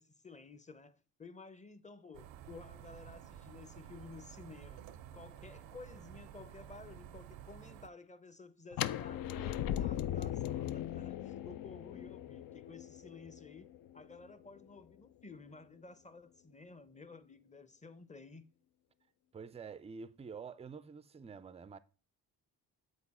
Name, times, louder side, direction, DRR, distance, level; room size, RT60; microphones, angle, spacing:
voice 1, 0.0-4.9 5.1-13.7 13.9-18.4, left 4 dB, 15° left, 0.7 m, -53 dB
sound 1, 2.1-7.9, right 10 dB, 70° right, 0.7 m, -52 dB
sound 2, 8.7-14.6, left 11 dB, 50° left, 0.5 m, -39 dB
voice 2, 19.3-21.8, right 5 dB, 15° right, 0.4 m, -48 dB
7.8 x 4.0 x 4.2 m
hypercardioid pair, 45°, 46 cm